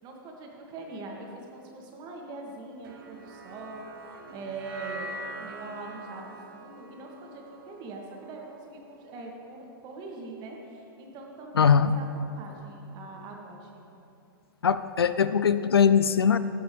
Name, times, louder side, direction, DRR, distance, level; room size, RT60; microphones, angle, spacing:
voice 1, 0.0-5.1 5.4-13.8, right 3 dB, 35° right, 0 dB, 2.0 m, -42 dB
sound 1, 2.8-9.2, right 1 dB, 65° right, 1.2 m, -44 dB
voice 2, 11.6-11.9 14.6-16.4, left 7 dB, 85° left, 13 dB, 0.4 m, -21 dB
16.5 x 6.9 x 3.5 m, 2.9 s
hypercardioid pair, 110°, 12 cm